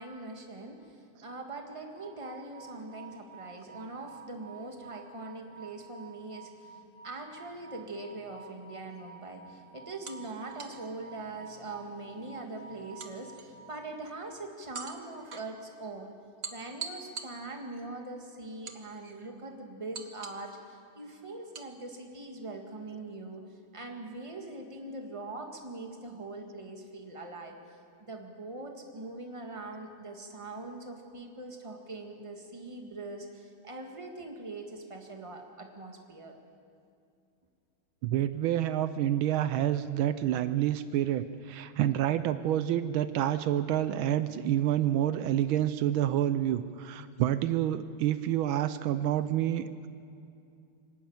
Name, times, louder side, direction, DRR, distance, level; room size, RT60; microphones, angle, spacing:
voice 1, 0.0-16.1 16.5-23.4 23.7-27.6 28.0-36.4, right 2 dB, 15° right, 3 dB, 1.7 m, -42 dB
sound 1, 1.9-14.1, right 5 dB, 45° left, 3.3 m, -52 dB
sound 2, 8.8-9.0 10.1-10.9 13.0-13.8 14.7-15.5 16.4-17.8 18.7-19.3 19.9-20.5 21.5-21.7, right 5 dB, 40° right, 1.1 m, -44 dB
voice 2, 38.0-49.9, right 12 dB, 80° right, 12 dB, 1.4 m, -28 dB
25.5 x 11.5 x 8.8 m, 2.5 s
omnidirectional pair, 2.3 m